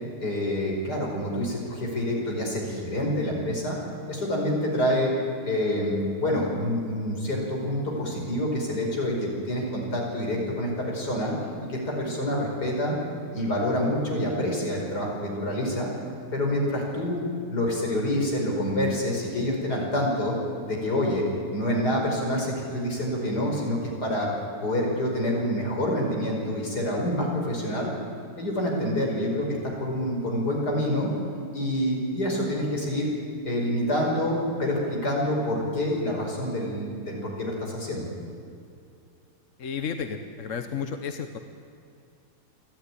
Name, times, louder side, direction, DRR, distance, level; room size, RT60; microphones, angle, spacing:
voice 1, 0.2-3.8 4.1-5.1 5.4-11.3 11.6-13.0 13.3-15.9 16.3-17.2 17.5-20.4 20.6-21.2 21.5-24.3 24.6-27.9 28.4-31.1 31.5-33.1 33.4-38.1, left 1 dB, 80° left, -1 dB, 5.6 m, -27 dB
voice 2, 39.6-41.4, left 6 dB, 55° left, 7 dB, 1.4 m, -32 dB
28.0 x 12.5 x 10.0 m, 2.5 s
omnidirectional pair, 1.7 m